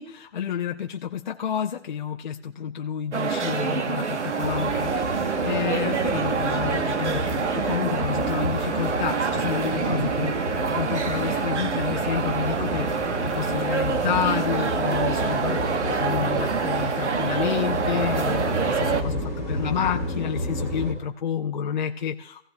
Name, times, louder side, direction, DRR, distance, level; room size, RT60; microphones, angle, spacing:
voice 1, 0.0-12.9 13.2-22.4, left 8 dB, 40° left, 3 dB, 0.7 m, -30 dB
sound 1, 3.1-19.0, right 5 dB, 75° right, 1.3 m, -26 dB
sound 2, 4.4-20.9, equal, 10° right, 1.6 m, -31 dB
22.5 x 15.5 x 2.3 m, 0.65 s
hypercardioid pair, 160°, 35 cm